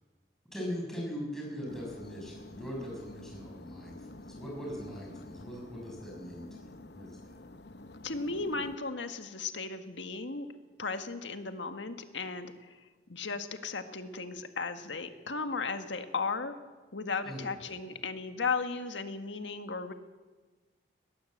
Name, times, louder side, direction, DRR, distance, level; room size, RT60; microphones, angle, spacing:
voice 1, 0.5-7.4 17.2-17.7, equal, ahead, -2 dB, 6.6 m, -41 dB
sound 1, 1.7-8.8, left 2 dB, 65° left, 0.9 m, -49 dB
voice 2, 8.0-10.5 10.8-12.8 13.1-16.5 16.9-19.9, left 4 dB, 85° left, 7 dB, 1.7 m, -35 dB
21.0 x 18.0 x 7.9 m, 1.3 s
head